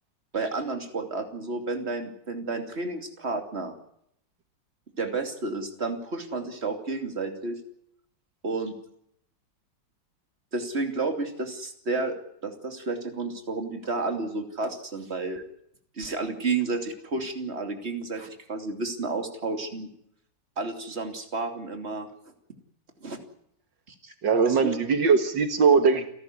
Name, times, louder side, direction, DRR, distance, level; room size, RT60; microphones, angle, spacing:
voice 1, 0.3-3.7 5.0-7.6 8.4-8.7 10.5-12.2 12.4-15.4 16.0-19.9 20.6-22.1 23.0-23.2 24.0-24.8, right 3 dB, 35° right, 5 dB, 3.1 m, -31 dB
voice 2, 24.2-26.1, right 5 dB, 75° right, 8 dB, 2.2 m, -20 dB
29.5 x 12.5 x 9.7 m, 0.74 s
omnidirectional pair, 2.0 m